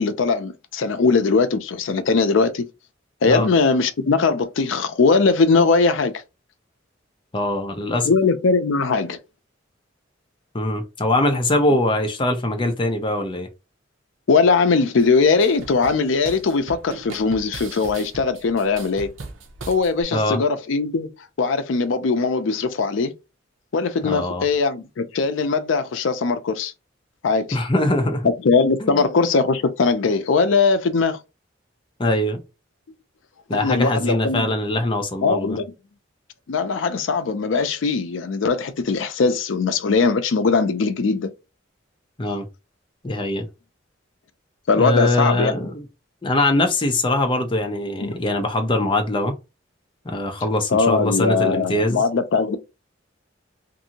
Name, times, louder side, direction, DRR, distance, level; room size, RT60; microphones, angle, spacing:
voice 1, 0.0-2.7 3.2-6.1 8.0-9.2 14.3-19.1 19.7-21.1 21.4-23.1 23.7-26.7 27.2-27.6 28.4-31.2 33.5-34.5 35.2-35.7 36.5-41.3 44.7-45.5 48.0-48.2 50.7-52.6, left 4 dB, 75° left, 0.5 m, -20 dB
voice 2, 7.3-8.1 10.5-13.5 20.1-20.4 24.0-24.4 27.5-28.3 28.8-29.1 32.0-32.4 33.5-35.6 42.2-42.5 43.0-43.5 44.7-45.8 46.2-49.4 50.0-52.0, left 1 dB, 25° left, 0.5 m, -22 dB
sound 1, 15.0-20.0, right 3 dB, 90° right, 0.7 m, -39 dB
2.6 x 2.6 x 2.8 m
head